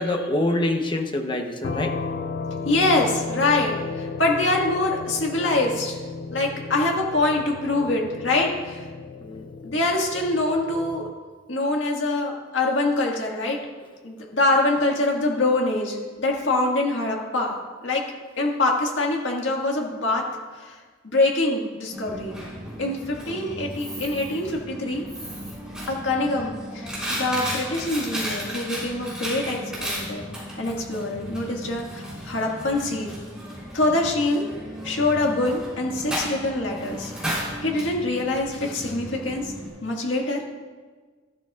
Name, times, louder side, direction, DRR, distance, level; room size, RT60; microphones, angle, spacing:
voice 1, 0.0-2.0 9.2-9.5, left 1 dB, 25° left, 4 dB, 0.9 m, -25 dB
sound 1, 1.6-11.1, left 4 dB, 55° left, 0.4 m, -34 dB
voice 2, 2.7-6.0 6.3-8.8 9.6-11.0 11.5-13.6 14.0-17.5 17.8-18.0 18.4-20.3 20.6-20.8 21.0-22.4 22.8-25.0 25.9-30.2 30.6-33.2 33.7-34.4 34.8-37.1 37.6-39.4 39.8-40.4, left 2 dB, 75° left, -1 dB, 1.8 m, -24 dB
Coin (dropping), 21.9-39.7, equal, 5° right, 3.6 m, -34 dB
13.0 x 11.5 x 2.4 m, 1.4 s
head